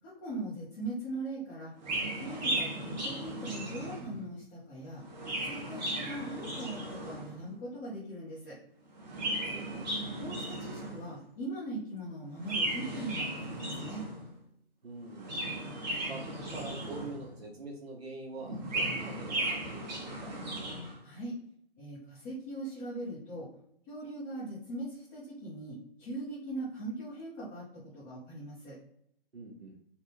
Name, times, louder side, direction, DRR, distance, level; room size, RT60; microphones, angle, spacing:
voice 1, 0.0-1.7 2.0-5.0 5.4-8.6 10.2-14.0 21.0-21.3 21.8-23.5 23.9-28.8, right 1 dB, 15° left, -10 dB, 0.5 m, -40 dB
Chirp tweet, 1.8-4.3 5.0-7.4 8.9-11.1 12.4-14.3 15.1-17.3 18.4-20.9, right 1 dB, 45° right, 1.1 m, -36 dB
voice 2, 9.2-9.9 14.8-15.4 16.1-20.4 29.3-29.8, right 2 dB, 80° right, -1 dB, 0.9 m, -45 dB
3.4 x 2.1 x 2.9 m, 0.69 s
figure-of-eight pair, 140°, 31 cm